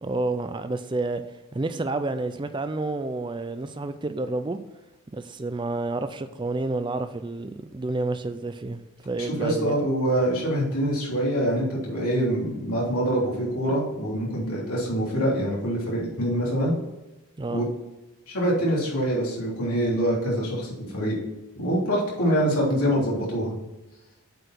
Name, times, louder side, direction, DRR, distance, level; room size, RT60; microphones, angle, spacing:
voice 1, 0.0-1.2 1.5-4.6 5.1-9.7 17.4-17.7, right 2 dB, 20° right, 10 dB, 0.3 m, -29 dB
voice 2, 9.2-16.7 17.5-17.6 18.3-21.2 21.6-23.5, equal, 80° left, -4 dB, 3.2 m, -25 dB
7.8 x 4.9 x 5.9 m, 1.0 s
head